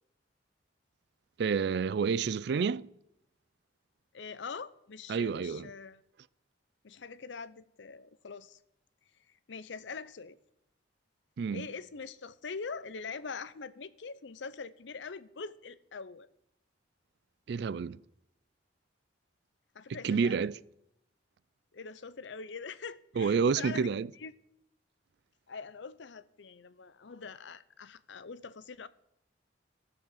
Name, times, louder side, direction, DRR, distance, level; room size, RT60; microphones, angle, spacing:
voice 1, 1.4-2.9 5.1-5.7 11.4-11.7 17.5-18.0 19.9-20.6 23.2-24.1, right 5 dB, 60° right, 0.4 m, -29 dB
voice 2, 4.1-6.0 6.8-8.6 9.5-10.4 11.5-16.3 19.7-20.5 21.7-23.9 24.2-24.3 25.5-28.9, left 5 dB, 70° left, 0.6 m, -43 dB
14.5 x 7.1 x 7.5 m
head